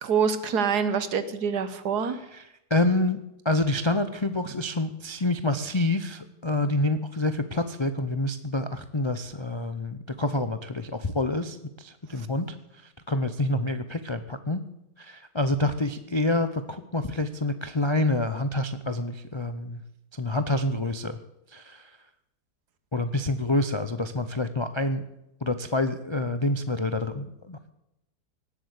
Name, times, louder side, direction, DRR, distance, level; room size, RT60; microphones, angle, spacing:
voice 1, 0.0-2.2 12.2-12.3, right 6 dB, 70° right, 12 dB, 1.7 m, -26 dB
voice 2, 2.7-12.6 12.8-14.6 15.0-19.8 20.1-21.2 21.5-21.9 22.9-25.0 25.4-27.7, left 2 dB, 40° left, 10 dB, 0.4 m, -27 dB
18.5 x 8.3 x 8.2 m, 0.87 s
omnidirectional pair, 1.8 m